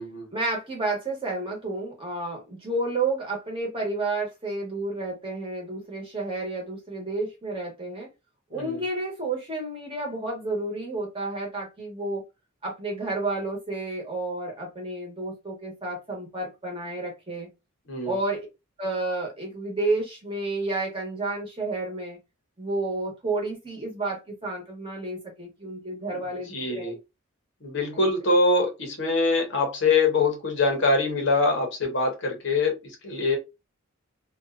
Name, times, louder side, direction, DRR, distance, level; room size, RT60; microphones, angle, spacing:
voice 1, 0.3-8.1 8.5-12.2 12.6-17.5 18.0-18.5 18.8-22.2 22.6-27.0 28.0-28.1, right 2 dB, 25° right, 1.0 m, -31 dB
voice 2, 26.5-27.0 27.6-33.4, left 3 dB, 60° left, 0.8 m, -24 dB
2.6 x 2.2 x 2.4 m
head